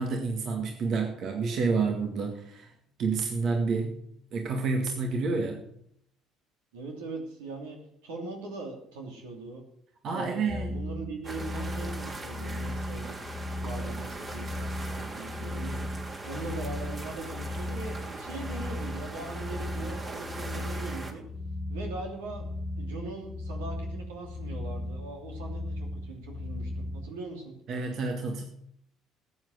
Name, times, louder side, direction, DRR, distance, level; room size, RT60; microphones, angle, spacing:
voice 1, 0.0-2.7 3.0-4.0 4.3-5.6 10.0-10.7 27.7-28.4, right 4 dB, 60° right, 3 dB, 1.9 m, -29 dB
voice 2, 6.7-9.6 10.1-13.2 13.6-14.7 14.9-21.2 21.7-22.5 22.8-27.5, right 3 dB, 80° right, 2 dB, 2.8 m, -40 dB
sound 1, 10.5-27.1, left 1 dB, 35° left, 1.5 m, -36 dB
sound 2, 11.2-21.1, right 2 dB, 35° right, 3.1 m, -41 dB
14.0 x 8.6 x 6.5 m, 0.70 s
hypercardioid pair, 65°, 0 cm